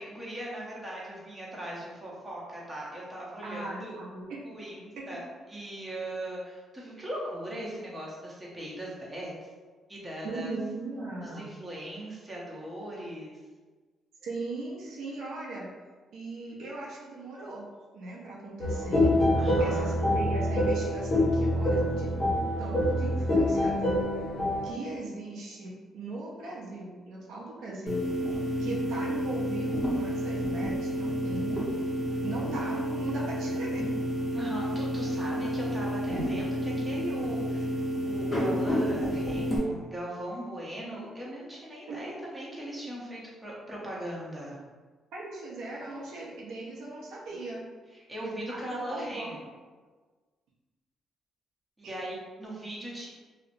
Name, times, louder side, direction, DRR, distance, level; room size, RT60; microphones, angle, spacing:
voice 1, 0.0-4.0 4.4-5.2 5.5-9.3 9.9-10.5 11.2-13.4 19.4-19.9 28.5-28.9 34.3-37.7 38.0-44.6 47.9-49.4 51.8-53.1, right 1 dB, 15° right, -6 dB, 0.8 m, -39 dB
voice 2, 3.4-4.4 5.0-5.1 10.2-11.6 14.2-15.7 16.1-17.6 17.9-19.2 19.6-24.0 24.6-28.1 28.6-31.6 32.2-33.8 41.9-42.1 45.1-47.6 48.5-49.4 51.8-52.0, right 2 dB, 80° right, -4 dB, 0.6 m, -38 dB
sound 1, 18.6-24.7, left 1 dB, 60° left, 0.7 m, -26 dB
sound 2, 27.9-39.6, equal, 30° left, 0.9 m, -30 dB
2.8 x 2.0 x 2.6 m, 1.4 s
cardioid pair, 90°, 0 cm